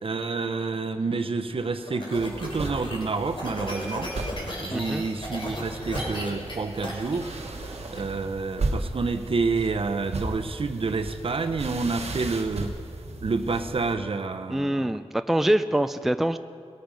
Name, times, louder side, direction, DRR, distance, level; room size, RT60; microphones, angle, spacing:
voice 1, 0.0-4.1 4.6-7.3 7.9-12.8 13.2-14.9, right 4 dB, 60° right, 8 dB, 0.8 m, -28 dB
sound 1, 1.5-8.0, left 1 dB, 55° left, 3.1 m, -36 dB
sound 2, 2.1-13.9, right 2 dB, 85° right, 1.2 m, -36 dB
voice 2, 4.7-5.0 14.5-15.0 15.3-16.4, right 1 dB, 5° right, 10 dB, 0.4 m, -24 dB
19.0 x 9.0 x 5.3 m, 2.2 s
wide cardioid pair, 90°, 10 cm